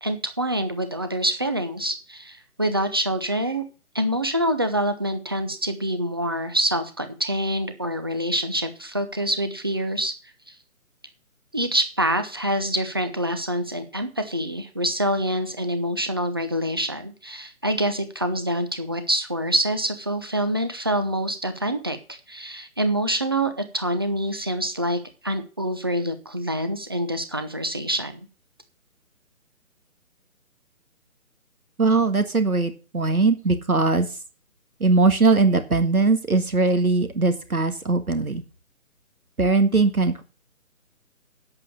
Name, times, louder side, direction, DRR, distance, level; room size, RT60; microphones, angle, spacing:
voice 1, 0.0-3.6 3.9-10.1 10.5-10.6 11.5-28.3, right 1 dB, 15° right, 9 dB, 0.6 m, -26 dB
voice 2, 31.8-34.2 34.8-38.4 39.4-40.2, right 3 dB, 80° right, 8 dB, 1.9 m, -20 dB
8.9 x 8.2 x 6.6 m, 0.35 s
figure-of-eight pair, 145°, 43 cm